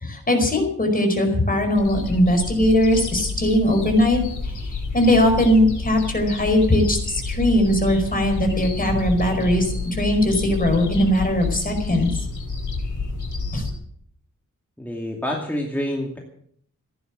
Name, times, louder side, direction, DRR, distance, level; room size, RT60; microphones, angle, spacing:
voice 1, 0.0-12.1 13.5-13.6, left 1 dB, 25° left, 4 dB, 4.8 m, -20 dB
sound 1, 1.8-13.7, left 3 dB, 65° left, 4.0 m, -29 dB
voice 2, 14.8-16.2, left 1 dB, 5° left, -1 dB, 2.5 m, -27 dB
16.0 x 11.0 x 7.7 m, 0.64 s
wide cardioid pair, 130°, 32 cm